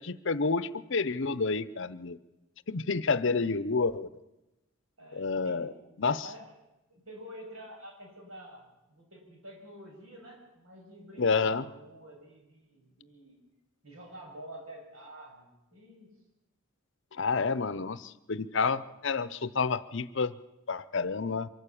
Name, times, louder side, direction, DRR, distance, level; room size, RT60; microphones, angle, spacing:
voice 1, 0.0-2.2 2.7-4.1 5.1-5.7 6.0-6.2 11.2-11.6 17.2-20.3 20.7-21.5, left 4 dB, 60° left, 16 dB, 0.8 m, -29 dB
voice 2, 5.0-5.8 6.2-6.5 6.9-13.4 13.8-16.1, right 1 dB, 90° right, 2 dB, 6.7 m, -48 dB
24.0 x 14.0 x 8.6 m, 0.97 s
head